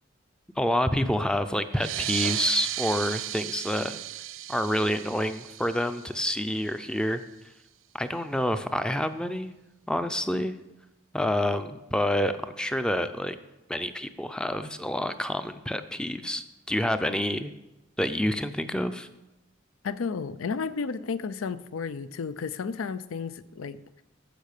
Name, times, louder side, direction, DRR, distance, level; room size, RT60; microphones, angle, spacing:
voice 1, 0.6-4.0 4.5-7.2 7.9-9.5 9.9-10.6 11.1-13.4 13.7-17.5 18.0-19.1, left 1 dB, 5° left, 10 dB, 0.4 m, -28 dB
sound 1, 1.7-6.8, right 13 dB, 70° right, 0.5 m, -35 dB
voice 2, 19.8-24.0, left 5 dB, 90° left, 16 dB, 0.5 m, -33 dB
10.5 x 6.5 x 6.6 m, 0.98 s
head